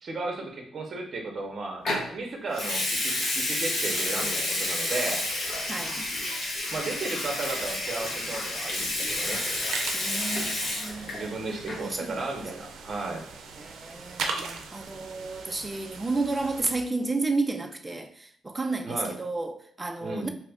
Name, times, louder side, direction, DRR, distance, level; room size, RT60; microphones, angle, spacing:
voice 1, 0.0-1.9 2.1-5.2 6.7-9.4 11.1-13.3 18.9-19.2 20.0-20.3, right 3 dB, 40° right, 0.7 m, -34 dB
Water tap faucet / Sink (filling or washing) / Liquid, 1.9-2.1 2.5-11.3 11.6-11.9, left 1 dB, 55° left, 1.0 m, -30 dB
voice 2, 5.7-6.0 9.9-11.1 11.5-12.2 13.6-20.3, right 3 dB, 15° right, 0.3 m, -32 dB
sound 1, 9.1-16.8, right 5 dB, 85° right, 0.5 m, -39 dB
3.0 x 2.4 x 3.4 m
cardioid pair, 125°, 0 cm